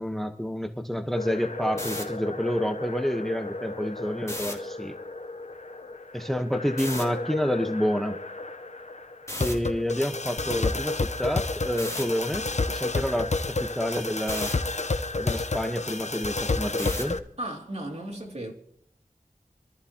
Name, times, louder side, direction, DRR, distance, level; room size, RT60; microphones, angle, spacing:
voice 1, 0.0-5.0 6.1-8.2 9.4-14.5 15.1-17.2, equal, ahead, 1.1 m, -29 dB
sound 1, 1.2-17.2, left 3 dB, 55° left, 0.8 m, -31 dB
sound 2, 1.8-2.0 4.2-4.5 6.8-7.0 9.3-9.5 11.8-12.0 14.3-14.5 16.8-17.2, left 1 dB, 20° left, 2.6 m, -34 dB
voice 2, 17.4-18.5, right 1 dB, 45° right, 2.5 m, -35 dB
26.0 x 14.0 x 2.9 m
wide cardioid pair, 55°, 15 cm